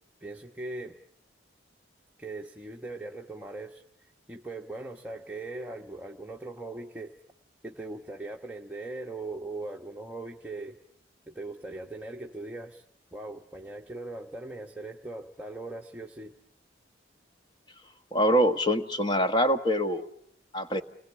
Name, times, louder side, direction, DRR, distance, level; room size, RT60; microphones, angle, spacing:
voice 1, 0.2-1.0 2.2-3.8 4.3-7.1 7.6-10.8 11.3-12.8 13.1-16.3, right 2 dB, 10° right, 1 dB, 1.2 m, -40 dB
voice 2, 18.1-20.1 20.5-20.8, equal, 25° left, 7 dB, 1.4 m, -24 dB
29.0 x 20.5 x 8.7 m, 0.72 s
head